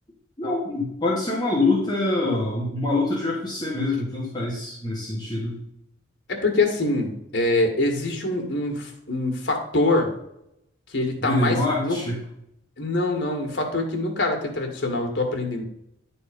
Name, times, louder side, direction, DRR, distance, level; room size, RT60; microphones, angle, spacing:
voice 1, 0.4-5.6 11.2-12.2, left 2 dB, 20° left, -5 dB, 1.8 m, -25 dB
voice 2, 6.3-10.1 10.9-12.0 12.8-15.6, left 2 dB, 65° left, 3 dB, 1.8 m, -24 dB
9.9 x 4.2 x 5.2 m, 0.79 s
head